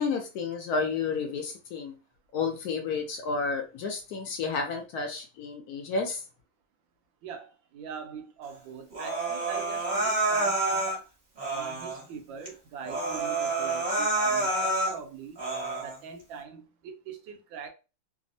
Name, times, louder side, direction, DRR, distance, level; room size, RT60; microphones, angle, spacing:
voice 1, 0.0-1.9 2.3-6.2, left 4 dB, 75° left, 0.9 m, -31 dB
voice 2, 7.2-10.9 11.5-15.4 15.8-17.7, right 6 dB, 85° right, 1.4 m, -42 dB
Human voice, 8.9-11.0 11.4-12.0 12.5-12.6 12.8-15.0 15.4-16.0, right 2 dB, 40° right, 0.6 m, -28 dB
3.4 x 2.0 x 2.6 m
omnidirectional pair, 2.1 m